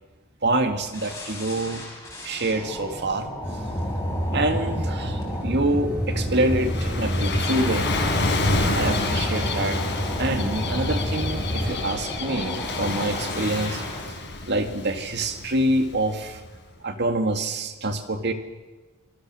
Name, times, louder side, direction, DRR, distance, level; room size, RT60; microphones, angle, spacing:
voice 1, 0.4-1.8 2.2-3.3 4.3-7.9 8.7-9.8 10.2-13.8 14.5-16.4 16.8-18.3, right 2 dB, 50° right, 6 dB, 2.0 m, -26 dB
sound 1, 0.9-14.1, left 1 dB, 15° left, 5.9 m, -36 dB
sound 2, 3.4-11.7, equal, 10° right, 6.8 m, -29 dB
Gull seagull / Waves surf, 5.9-16.5, left 2 dB, 55° left, 4.4 m, -29 dB
26.0 x 20.5 x 6.3 m, 1.2 s
head